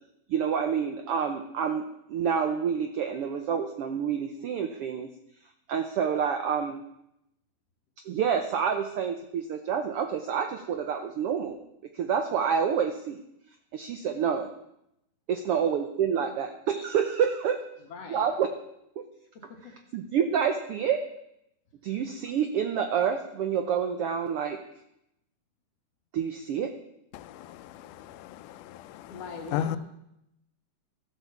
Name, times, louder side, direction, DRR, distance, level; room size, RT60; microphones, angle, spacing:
voice 1, 0.3-1.8 2.1-5.1 5.7-6.8 8.0-11.6 11.9-13.2 13.7-14.5 15.3-17.6 18.1-18.5 19.0-19.1 19.6-21.0 21.8-24.6 26.1-26.7, right 7 dB, 75° right, 7 dB, 1.3 m, -28 dB
voice 2, 17.9-18.3 19.4-19.5 29.1-29.8, left 5 dB, 60° left, 2 dB, 2.2 m, -40 dB
voice 3, 27.1-29.2 29.5-29.8, left 10 dB, 90° left, 13 dB, 2.2 m, -35 dB
13.5 x 8.2 x 7.0 m, 0.82 s
omnidirectional pair, 3.5 m